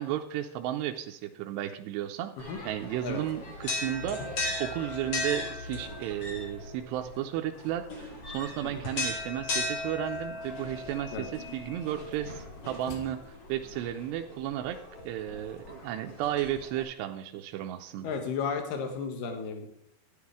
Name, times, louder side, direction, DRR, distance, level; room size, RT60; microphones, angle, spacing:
voice 1, 0.0-4.2 4.6-14.8 15.0-18.1, right 12 dB, 85° right, 4 dB, 2.7 m, -34 dB
sound 1, 2.4-16.8, left 2 dB, 45° left, 1.5 m, -38 dB
sound 2, 8.4-14.3, left 6 dB, 80° left, 3.3 m, -51 dB
voice 2, 18.0-19.7, left 5 dB, 60° left, 4 dB, 2.7 m, -33 dB
11.5 x 10.5 x 3.6 m, 0.75 s
omnidirectional pair, 5.0 m